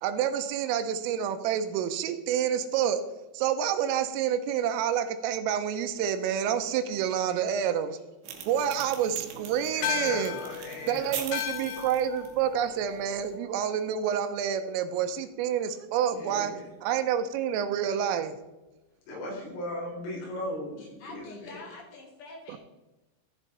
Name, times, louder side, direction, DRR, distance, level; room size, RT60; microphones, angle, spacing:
voice 1, 0.0-3.0 3.3-8.0 8.5-10.4 10.9-16.5 16.8-18.3 22.5-22.6, right 9 dB, 85° right, 9 dB, 3.3 m, -28 dB
sound 1, 8.2-13.4, right 7 dB, 70° right, 3.2 m, -43 dB
voice 2, 9.7-11.3 16.0-16.6 19.1-21.6, left 1 dB, 90° left, -3 dB, 6.7 m, -38 dB
sound 2, 9.8-14.5, left 12 dB, 75° left, 2.8 m, -37 dB
voice 3, 21.0-22.6, left 3 dB, 40° left, 0 dB, 2.3 m, -46 dB
15.0 x 7.3 x 4.1 m, 1.0 s
omnidirectional pair, 5.9 m